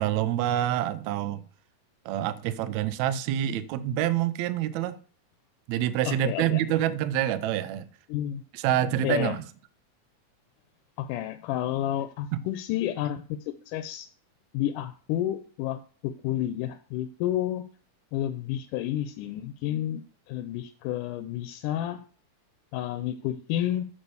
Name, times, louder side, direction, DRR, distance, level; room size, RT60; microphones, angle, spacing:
voice 1, 0.0-1.4 2.1-5.0 5.7-7.9 8.5-9.5 12.3-12.4, right 11 dB, 75° right, 1.8 m, -27 dB
voice 2, 6.1-6.6 8.1-8.4 9.0-9.4 11.0-14.1 14.5-17.7 18.1-20.0 20.3-22.0 22.7-23.8, left 12 dB, 85° left, 2.2 m, -30 dB
8.0 x 6.6 x 7.1 m
omnidirectional pair, 3.6 m